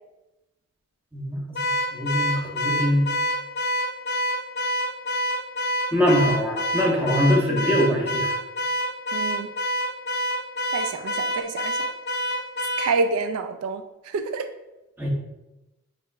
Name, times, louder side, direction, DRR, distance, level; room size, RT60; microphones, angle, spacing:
voice 1, 1.1-1.6 1.9-3.1 5.9-8.3 15.0-15.1, equal, 10° right, -3 dB, 0.9 m, -22 dB
Car / Alarm, 1.6-13.0, equal, 50° left, 0.4 m, -27 dB
voice 2, 9.1-9.5 10.7-11.8 12.8-13.8 14.1-14.5, right 4 dB, 75° right, 8 dB, 0.3 m, -27 dB
6.4 x 3.2 x 2.4 m, 0.98 s
head